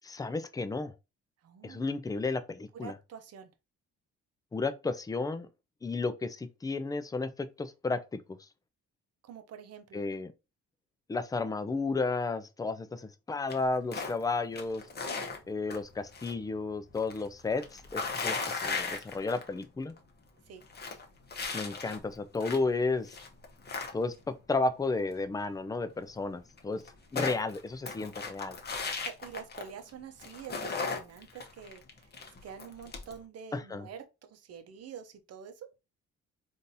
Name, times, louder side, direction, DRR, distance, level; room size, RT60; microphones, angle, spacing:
voice 1, 0.0-0.9 1.6-2.9 4.5-5.5 5.8-8.2 9.9-10.3 11.1-14.8 15.5-20.0 21.5-23.1 23.9-26.8 27.1-28.6 33.5-33.9, left 3 dB, 10° left, 0.4 m, -33 dB
voice 2, 1.4-1.8 2.7-3.5 9.2-10.0 20.5-20.6 29.0-32.1 32.4-34.0 34.3-35.7, right 8 dB, 55° right, 0.7 m, -46 dB
sound 1, 13.5-14.2 14.5-16.4 16.6-19.6 20.0-20.1 20.5-22.7 23.1-24.3 25.9-26.0 26.2-26.3 26.6-29.9 30.2-33.2, left 4 dB, 35° left, 0.9 m, -37 dB
3.8 x 2.6 x 2.7 m
cardioid pair, 90°, 30 cm